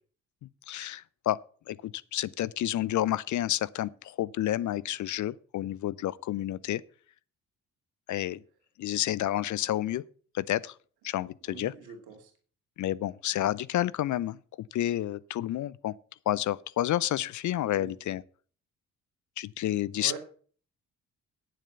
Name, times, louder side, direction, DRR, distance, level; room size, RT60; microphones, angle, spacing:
voice 1, 0.7-1.4 1.7-6.8 8.1-8.4 8.8-10.0 10.3-10.8 11.0-11.7 12.8-15.9 16.3-18.2 19.4-20.2, left 13 dB, 45° left, 0.5 m, -30 dB
voice 2, 11.5-12.3 17.7-17.9 20.0-20.2, right 7 dB, 65° right, 2.7 m, -43 dB
9.1 x 7.5 x 6.8 m
figure-of-eight pair, 40°, 41 cm